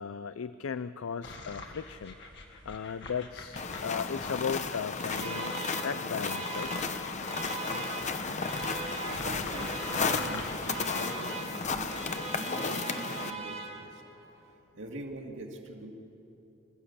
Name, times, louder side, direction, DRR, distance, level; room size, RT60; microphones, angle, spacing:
voice 1, 0.0-2.2 2.6-6.7, left 6 dB, 75° left, 14 dB, 0.5 m, -36 dB
sound 1, 1.2-12.1, left 2 dB, 55° left, 2.0 m, -46 dB
sound 2, 3.6-13.3, left 4 dB, 35° left, 0.9 m, -34 dB
Alarm, 4.8-14.2, right 4 dB, 30° right, 1.8 m, -41 dB
voice 2, 7.6-8.6 9.1-14.0 14.7-15.9, right 1 dB, 65° right, 1 dB, 2.4 m, -44 dB
25.5 x 14.0 x 8.5 m, 3.0 s
head